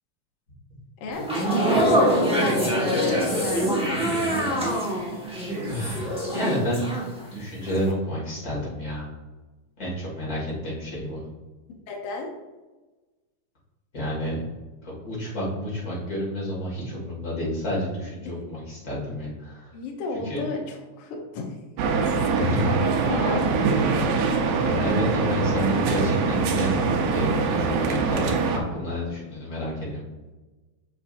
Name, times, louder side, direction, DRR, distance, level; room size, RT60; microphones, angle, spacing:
voice 1, 1.0-3.8 11.9-12.3 19.7-21.5 22.1-24.0, left 3 dB, 65° left, 0 dB, 1.5 m, -33 dB
sound 1, 1.1-7.4 7.7-7.9, equal, 5° right, 0.6 m, -24 dB
voice 2, 5.7-6.9 7.3-9.1 9.8-11.2 13.9-14.3 14.8-19.7 20.2-20.4 22.3-22.7 24.6-26.7 27.1-30.0, equal, 30° left, -6 dB, 2.5 m, -30 dB
sound 2, 21.8-28.6, right 4 dB, 75° right, 2.0 m, -23 dB
7.3 x 6.6 x 2.6 m, 1.2 s
omnidirectional pair, 3.6 m